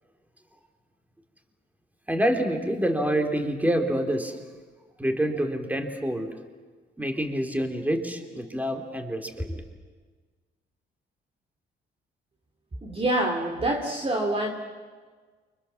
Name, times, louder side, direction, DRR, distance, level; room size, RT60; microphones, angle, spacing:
voice 1, 2.1-4.4 5.0-6.3 7.0-9.6, right 1 dB, 10° right, 4 dB, 3.5 m, -27 dB
voice 2, 12.8-14.5, right 1 dB, 30° right, 2 dB, 3.0 m, -26 dB
28.5 x 26.0 x 7.2 m, 1.4 s
cardioid pair, 90°, 20 cm